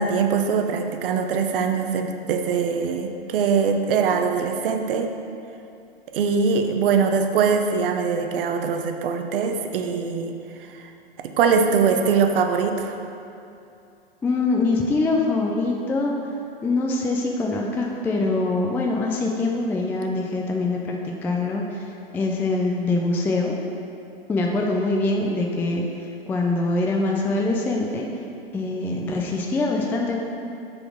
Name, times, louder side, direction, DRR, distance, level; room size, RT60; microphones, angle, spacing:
voice 1, 0.0-5.1 6.1-10.3 10.6-10.9 11.2-13.0, right 5 dB, 65° right, 6 dB, 0.8 m, -22 dB
voice 2, 14.2-16.2 16.6-21.8 22.1-23.5 24.3-25.8 26.3-28.1 28.5-30.2, left 2 dB, 5° left, 0 dB, 0.3 m, -24 dB
6.6 x 4.3 x 6.1 m, 2.7 s
hypercardioid pair, 115°, 30 cm